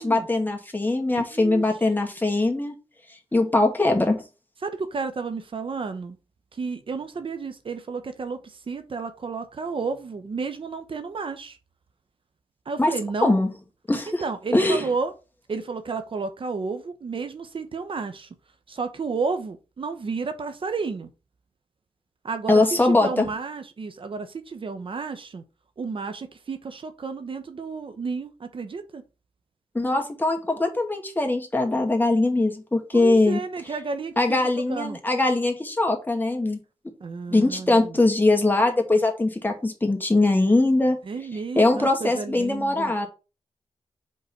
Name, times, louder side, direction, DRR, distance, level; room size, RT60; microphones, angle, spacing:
voice 1, 0.0-2.7 3.3-4.2 12.8-12.9 13.2-13.5 13.9-14.2 14.5-14.8 22.5-23.3 29.7-33.4 34.2-36.6 37.3-41.0 41.6-43.1, left 2 dB, 15° left, 2.0 m, -21 dB
voice 2, 1.1-1.7 4.6-6.2 6.5-11.6 12.7-13.4 14.1-15.1 15.5-18.3 18.7-21.1 22.2-25.4 25.8-29.0 32.9-34.4 34.7-35.0 37.0-38.0 41.0-42.9, right 4 dB, 55° right, 0.9 m, -32 dB
5.4 x 3.9 x 5.4 m
cardioid pair, 60°, 11 cm